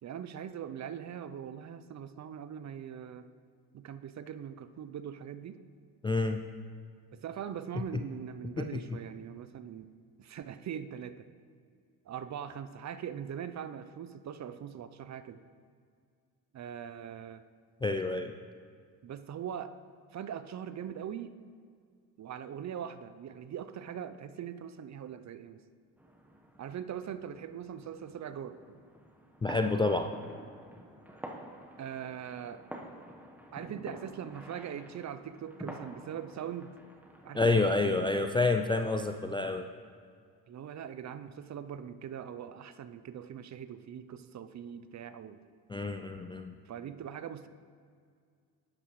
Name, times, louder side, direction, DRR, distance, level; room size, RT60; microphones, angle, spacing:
voice 1, 0.0-3.2 3.7-5.6 7.1-9.9 10.2-11.3 12.1-15.4 16.5-17.4 19.0-19.7 20.1-21.3 22.2-25.6 26.6-28.8 31.8-32.7 33.5-36.7 37.2-38.4 40.5-45.4 46.7-47.5, right 9 dB, 40° right, 12 dB, 0.6 m, -41 dB
voice 2, 6.0-6.4 8.6-8.7 17.8-18.3 29.4-30.1 37.3-39.7 45.7-46.5, left 3 dB, 10° left, 6 dB, 0.3 m, -28 dB
sound 1, 26.0-37.9, right 1 dB, 5° right, 1.1 m, -48 dB
11.0 x 9.8 x 3.1 m, 2.1 s
hypercardioid pair, 55°, 45 cm